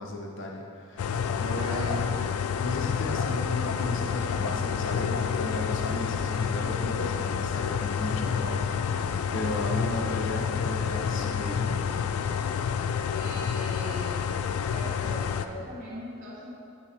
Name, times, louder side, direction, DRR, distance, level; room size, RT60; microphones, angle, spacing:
voice 1, 0.0-2.1 2.6-8.9 9.3-11.8, left 1 dB, 55° left, -1 dB, 0.8 m, -35 dB
sound 1, 1.0-15.5, left 7 dB, 80° left, 0.3 m, -29 dB
voice 2, 1.6-2.1 13.1-14.3 14.7-16.5, equal, 40° right, -8 dB, 1.6 m, -40 dB
9.9 x 4.7 x 2.9 m, 2.6 s
head